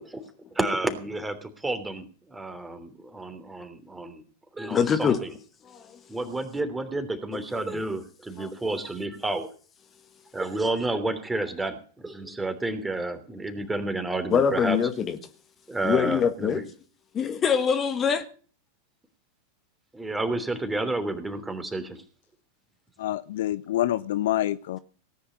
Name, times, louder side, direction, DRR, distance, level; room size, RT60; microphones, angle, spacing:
voice 1, 0.5-4.2 4.5-5.3 6.1-9.5 10.3-14.8 15.7-16.7 19.9-22.0, right 2 dB, 10° right, 3.2 m, -30 dB
voice 2, 4.7-5.2 5.7-5.8 8.4-8.5 14.3-15.2 15.8-16.6 17.1-18.2, left 7 dB, 25° left, 1.8 m, -23 dB
voice 3, 23.0-24.8, left 13 dB, 55° left, 0.6 m, -27 dB
18.5 x 10.0 x 5.5 m
figure-of-eight pair, 90°, 0 cm